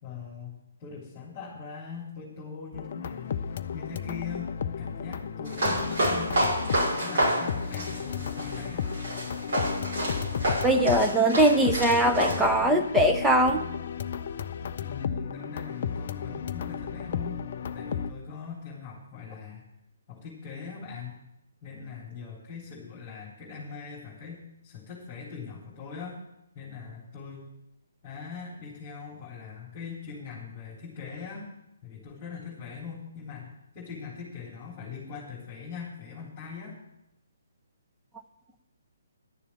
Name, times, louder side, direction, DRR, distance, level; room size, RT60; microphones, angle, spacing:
voice 1, 0.0-6.4 6.9-8.9 14.8-17.4 17.7-19.6 20.1-21.2 21.6-26.2 26.5-27.5 28.0-31.5 31.8-36.7, left 5 dB, 20° left, -5 dB, 3.3 m, -41 dB
sound 1, 2.7-18.1, left 7 dB, 40° left, 0.5 m, -34 dB
sound 2, 5.5-12.4, right 1 dB, 45° right, 6.1 m, -29 dB
voice 2, 10.6-13.6, right 1 dB, 5° right, 4 dB, 0.8 m, -21 dB
11.5 x 7.0 x 8.5 m, 0.86 s
figure-of-eight pair, 135°, 0 cm